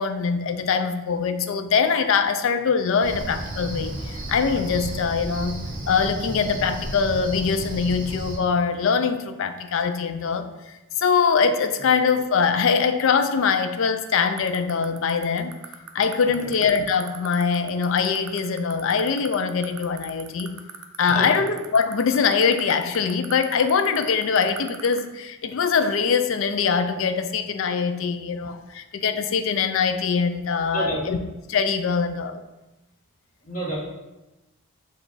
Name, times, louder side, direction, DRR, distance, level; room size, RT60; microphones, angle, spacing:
voice 1, 0.0-5.6 5.9-15.6 15.9-20.5 21.0-31.2 31.5-32.4, left 5 dB, 60° left, 9 dB, 0.3 m, -23 dB
Cricket, 3.0-8.4, right 1 dB, 35° right, 0.8 m, -33 dB
sound 1, 14.4-25.0, right 10 dB, 70° right, 0.5 m, -37 dB
voice 2, 33.4-33.8, right 2 dB, 35° left, -6 dB, 1.6 m, -29 dB
5.6 x 2.4 x 3.9 m, 1.0 s
head